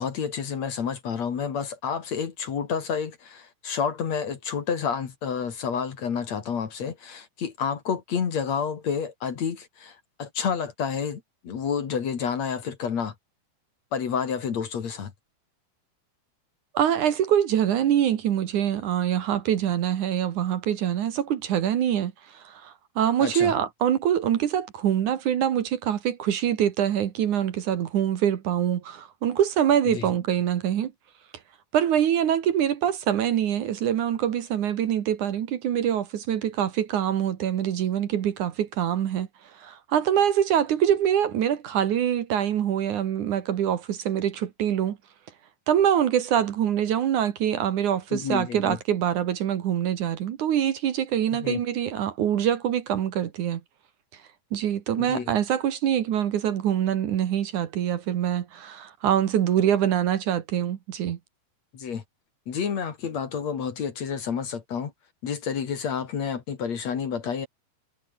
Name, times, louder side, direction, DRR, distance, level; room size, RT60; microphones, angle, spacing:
voice 1, 0.0-13.1 13.9-15.1 23.2-23.5 29.9-30.1 48.1-48.8 51.4-51.6 55.0-55.3 61.7-62.0 62.5-64.9 65.2-67.5, left 6 dB, 50° left, 3.2 m, -29 dB
voice 2, 16.7-30.9 31.7-39.3 39.6-45.0 45.7-53.6 54.5-61.2, right 10 dB, 60° right, 2.7 m, -24 dB
omnidirectional pair, 4.2 m